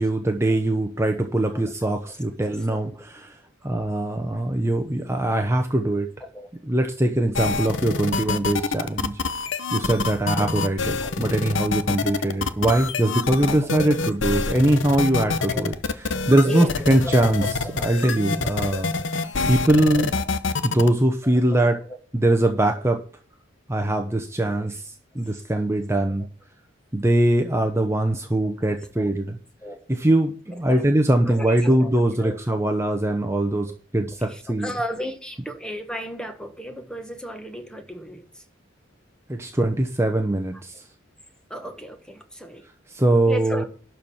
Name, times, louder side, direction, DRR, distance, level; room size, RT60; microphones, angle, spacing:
voice 1, 0.0-3.3 3.6-6.1 6.7-9.2 9.7-20.1 20.6-21.8 22.1-23.0 23.7-26.2 26.9-29.4 29.9-34.7 39.3-40.7 42.9-43.6, right 1 dB, 15° right, 1.0 m, -22 dB
sound 1, 7.3-20.9, left 4 dB, 80° left, 0.9 m, -26 dB
voice 2, 7.5-8.4 9.9-10.5 11.0-11.1 13.5-14.1 15.5-15.6 16.4-16.7 17.0-17.9 21.2-21.4 21.9-22.0 29.0-29.1 29.6-29.8 30.7-30.9 31.3-31.9 32.2-32.4 34.2-38.4 41.5-42.7 43.3-43.6, equal, 5° left, 1.4 m, -35 dB
12.0 x 4.5 x 7.2 m
head